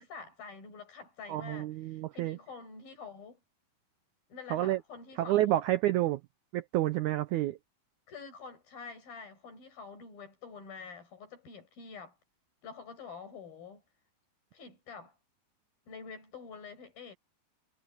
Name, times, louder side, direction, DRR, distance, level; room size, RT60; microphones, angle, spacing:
voice 1, 0.0-3.4 4.3-5.6 8.1-12.2 12.6-13.8 14.5-15.2 15.9-17.2, left 5 dB, 75° left, 8.0 m, -47 dB
voice 2, 1.3-2.4 4.5-4.8 5.2-6.2 6.5-7.6, right 14 dB, 85° right, 1.7 m, -29 dB
omnidirectional pair, 4.2 m